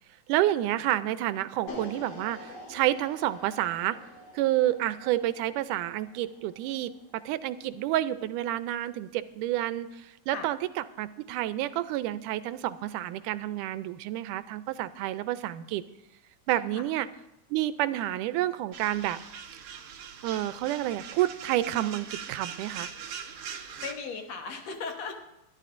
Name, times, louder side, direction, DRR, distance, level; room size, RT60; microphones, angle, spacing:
voice 1, 0.3-4.0 4.3-10.6 11.0-15.8 16.5-17.1 17.5-19.2 20.2-22.9, right 14 dB, 90° right, 13 dB, 2.2 m, -29 dB
sound 1, 1.7-7.8, left 2 dB, 85° left, 4.6 m, -47 dB
voice 2, 16.5-16.8 23.8-25.3, left 5 dB, 60° left, 4 dB, 2.3 m, -37 dB
sound 2, 18.7-23.9, right 7 dB, 60° right, 1.7 m, -41 dB
23.0 x 11.5 x 2.6 m, 0.89 s
omnidirectional pair, 3.6 m